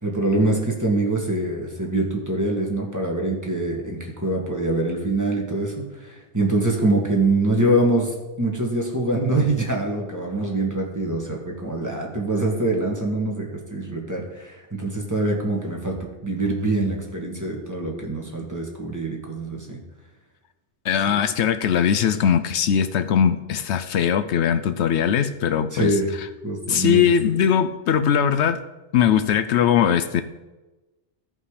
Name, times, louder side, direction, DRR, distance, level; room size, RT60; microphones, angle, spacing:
voice 1, 0.0-19.8 21.1-21.2 25.7-26.1 26.4-27.0, right 2 dB, 15° right, -1 dB, 1.8 m, -24 dB
voice 2, 20.8-26.3 26.7-28.6 28.9-30.2, left 8 dB, 75° left, 10 dB, 0.9 m, -20 dB
14.5 x 5.5 x 4.9 m, 1.1 s
omnidirectional pair, 1.2 m